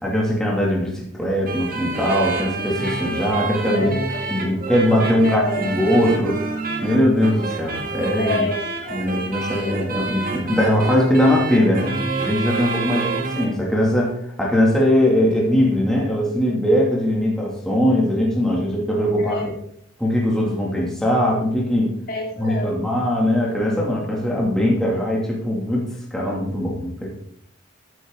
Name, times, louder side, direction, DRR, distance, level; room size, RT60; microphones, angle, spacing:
voice 1, 0.0-3.9 4.3-6.4 6.8-8.5 8.9-13.1 13.4-19.5 20.0-21.9 22.4-27.1, equal, 5° left, -3 dB, 2.6 m, -20 dB
sound 1, 1.4-13.5, right 3 dB, 45° right, 1.9 m, -28 dB
voice 2, 3.7-4.2 5.2-5.6 8.2-9.0 13.0-13.3 19.2-19.5 22.1-22.8, left 2 dB, 50° left, 0 dB, 2.6 m, -28 dB
13.0 x 9.5 x 3.9 m, 0.67 s
head